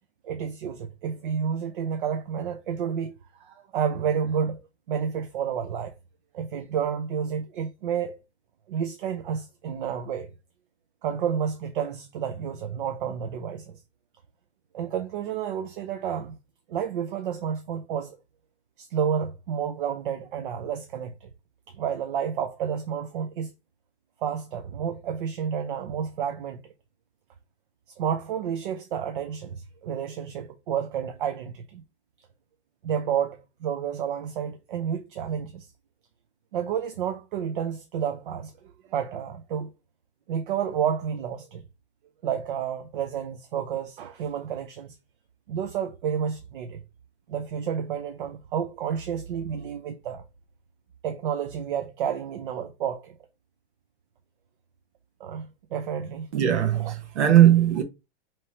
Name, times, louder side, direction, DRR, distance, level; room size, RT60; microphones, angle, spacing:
voice 1, 0.2-4.6 4.9-5.9 6.3-8.2 8.7-10.3 11.0-13.8 14.7-16.4 16.7-18.2 18.8-21.3 21.7-23.5 24.2-26.7 28.0-31.8 32.8-35.7 36.5-38.5 38.9-39.7 40.3-41.6 42.2-45.0 45.5-46.8 47.3-50.2 51.0-53.1 55.2-56.3 56.7-56.9, right 8 dB, 50° right, 0.5 m, -30 dB
voice 2, 56.3-57.8, right 11 dB, 80° right, 1.0 m, -19 dB
4.7 x 3.0 x 2.8 m
supercardioid pair, 175°, 34 cm